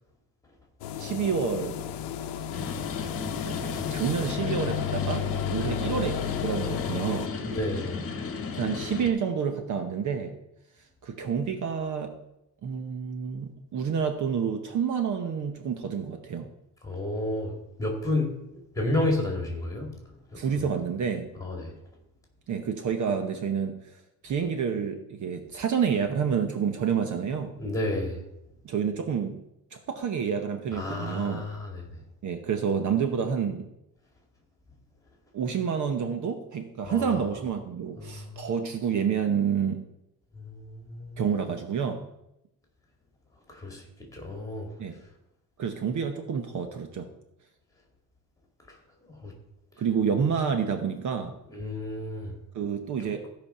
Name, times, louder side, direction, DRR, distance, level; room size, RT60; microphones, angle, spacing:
sound 1, 0.8-7.3, left 8 dB, 85° left, 0.8 m, -32 dB
voice 1, 1.0-1.8 3.4-7.3 8.5-10.3 11.0-12.2 12.6-16.5 20.4-21.3 22.5-23.8 24.2-27.5 28.6-29.3 29.7-31.4 32.2-33.6 35.3-39.8 41.2-42.0 44.8-45.0 45.6-47.1 49.8-51.3 52.5-53.2, right 7 dB, 45° right, 6 dB, 0.9 m, -29 dB
sound 2, 2.5-9.1, left 5 dB, 35° left, 1.3 m, -35 dB
voice 2, 7.4-8.0 16.8-18.4 18.8-19.9 20.3-20.4 21.4-21.7 27.6-28.2 30.7-31.9 36.8-37.2 38.0-38.5 40.3-41.2 43.5-43.8 44.1-44.7 48.7-48.8 49.2-49.3 51.5-52.3, left 2 dB, 10° left, 1 dB, 2.2 m, -31 dB
15.5 x 5.2 x 5.6 m, 0.87 s
cardioid pair, 170°, 40 cm